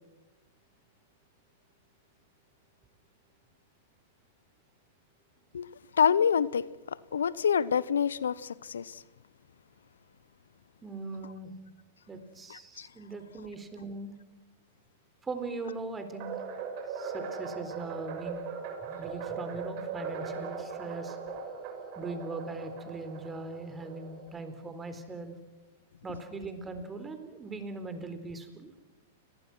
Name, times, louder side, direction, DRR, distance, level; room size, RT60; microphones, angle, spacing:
voice 1, 5.9-9.0 12.5-12.9, left 7 dB, 85° left, 20 dB, 0.7 m, -27 dB
voice 2, 10.8-11.5 12.1-14.1 15.2-16.3 16.9-18.4 18.8-21.2 22.0-25.4 26.0-28.7, right 3 dB, 15° right, 9 dB, 3.9 m, -40 dB
sound 1, 16.2-24.5, right 5 dB, 50° right, 6.8 m, -39 dB
29.5 x 21.5 x 6.1 m, 1.1 s
hypercardioid pair, 110°, 0 cm